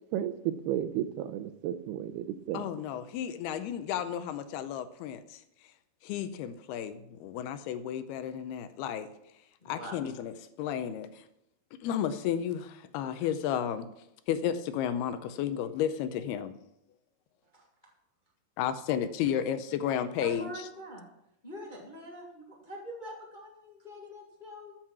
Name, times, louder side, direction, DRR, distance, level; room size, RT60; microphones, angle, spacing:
voice 1, 0.1-2.7, right 11 dB, 85° right, 10 dB, 2.7 m, -33 dB
voice 2, 2.5-5.4 6.0-9.1 9.7-10.3 10.6-11.2 11.8-13.9 14.3-16.5 18.6-20.5, left 9 dB, 85° left, 11 dB, 2.7 m, -32 dB
voice 3, 9.6-9.9 17.5-17.6 20.2-21.0 21.4-24.8, equal, 35° left, -2 dB, 0.7 m, -44 dB
13.5 x 7.4 x 6.2 m, 0.82 s
omnidirectional pair, 4.6 m